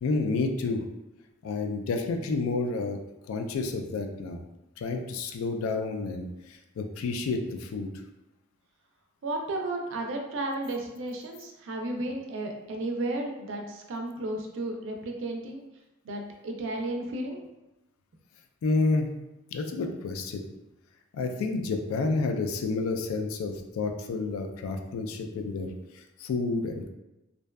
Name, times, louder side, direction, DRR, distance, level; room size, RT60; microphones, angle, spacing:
voice 1, 0.0-0.8 1.4-3.0 3.3-4.4 4.8-7.9 18.6-19.1 19.5-20.4 21.1-26.9, left 3 dB, 90° left, 4 dB, 0.3 m, -30 dB
voice 2, 9.2-15.6 16.0-17.4, right 2 dB, 65° right, 2 dB, 0.4 m, -33 dB
2.5 x 2.2 x 2.2 m, 1.0 s
head